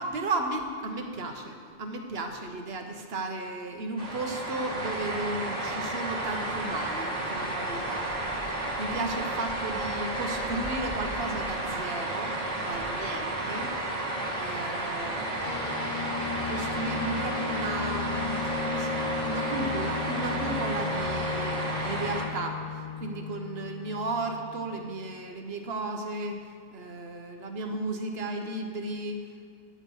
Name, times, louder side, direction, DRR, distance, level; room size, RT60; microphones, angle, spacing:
voice 1, 0.0-8.1 8.8-13.7 14.3-15.4 16.5-26.4 26.7-29.2, right 2 dB, 65° right, 4 dB, 1.2 m, -34 dB
sound 1, 4.0-22.3, right 2 dB, 35° right, 1.7 m, -32 dB
sound 2, 13.0-21.2, equal, 15° right, 1.1 m, -47 dB
sound 3, 15.4-25.2, left 7 dB, 55° left, 0.7 m, -36 dB
9.7 x 8.7 x 5.5 m, 2.2 s
omnidirectional pair, 1.1 m